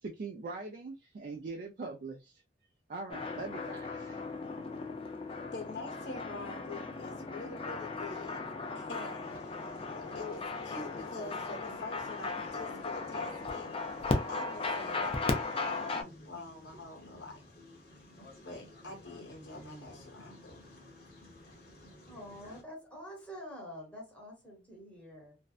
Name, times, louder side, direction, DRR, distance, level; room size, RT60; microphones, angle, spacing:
voice 1, 0.0-2.4 2.9-4.3, right 3 dB, 45° right, 0.3 m, -42 dB
sound 1, 3.1-16.0, left 3 dB, 30° left, 0.4 m, -37 dB
voice 2, 5.5-8.4 8.7-9.5 10.1-13.7 14.3-17.4 18.4-20.6, left 3 dB, 75° left, 1.1 m, -45 dB
sound 2, 9.2-22.6, left 1 dB, 55° left, 0.8 m, -54 dB
voice 3, 22.1-25.4, equal, 5° left, 0.8 m, -47 dB
2.5 x 2.1 x 2.3 m
head